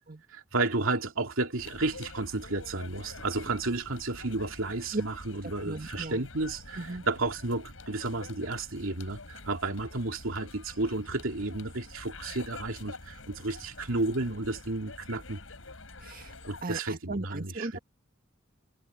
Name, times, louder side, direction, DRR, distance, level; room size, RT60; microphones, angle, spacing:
voice 1, 0.3-15.4 16.4-17.8, right 2 dB, 80° right, 2.6 m, -32 dB
sound 1, 1.6-16.6, left 3 dB, 85° left, 4.9 m, -47 dB
voice 2, 5.4-6.3 6.8-7.0 16.0-16.3 16.6-17.8, right 2 dB, 45° right, 1.7 m, -36 dB
head